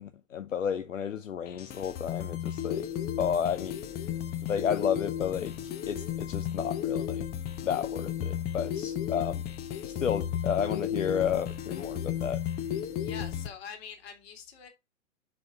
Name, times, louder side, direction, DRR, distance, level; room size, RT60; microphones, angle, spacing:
voice 1, 0.0-2.9 3.2-3.8 4.5-7.3 7.6-9.4 9.8-12.4, left 8 dB, 75° left, 0.8 m, -32 dB
sound 1, 1.5-13.5, left 10 dB, 25° left, 1.0 m, -34 dB
voice 2, 13.0-14.7, left 7 dB, 50° left, 2.8 m, -44 dB
6.9 x 5.3 x 4.5 m
figure-of-eight pair, 105°, 39 cm